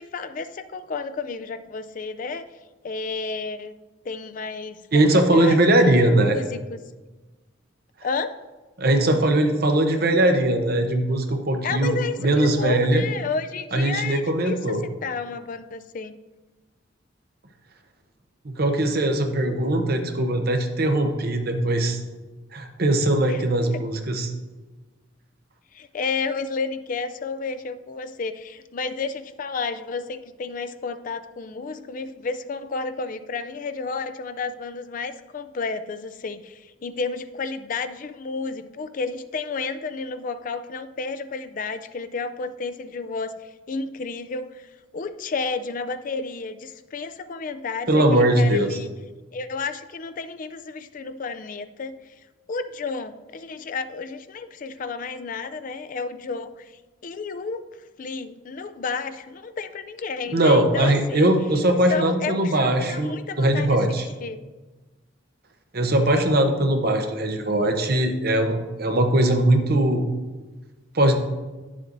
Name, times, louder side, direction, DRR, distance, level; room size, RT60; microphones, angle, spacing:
voice 1, 0.0-2.5 2.8-3.7 4.0-6.8 8.0-8.4 11.6-14.8 15.0-16.2 23.2-23.4 23.7-23.8 25.7-48.9 49.3-52.0 52.5-56.7 57.0-57.6 58.0-61.3 61.9-64.4, left 4 dB, 45° left, 11 dB, 0.4 m, -31 dB
voice 2, 4.9-6.4 8.8-13.0 13.7-14.8 18.4-22.0 22.5-24.3 47.9-48.8 60.3-63.1 63.4-64.1 65.7-70.0 70.9-71.1, right 1 dB, 50° right, 5 dB, 0.9 m, -20 dB
9.9 x 7.4 x 2.6 m, 1.2 s
head